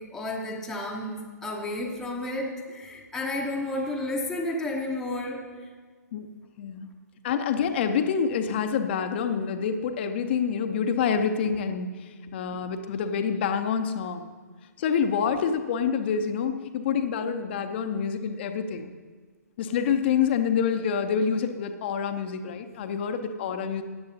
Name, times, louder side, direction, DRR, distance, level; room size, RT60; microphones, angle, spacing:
voice 1, 0.0-5.7, left 1 dB, 5° left, -1 dB, 0.8 m, -32 dB
voice 2, 6.6-6.9 7.2-14.3 14.8-18.9 19.6-23.8, left 7 dB, 35° left, 8 dB, 0.7 m, -27 dB
16.5 x 10.5 x 2.8 m, 1.5 s
figure-of-eight pair, 125°, 10 cm